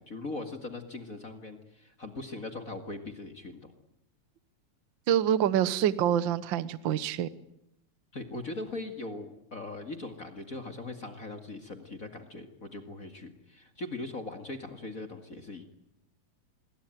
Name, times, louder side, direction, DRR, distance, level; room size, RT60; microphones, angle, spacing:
voice 1, 0.0-3.7 8.1-15.6, left 2 dB, 30° left, 7 dB, 2.2 m, -40 dB
voice 2, 5.1-7.3, right 10 dB, 60° right, 16 dB, 1.3 m, -26 dB
27.0 x 22.0 x 9.2 m, 0.84 s
omnidirectional pair, 3.4 m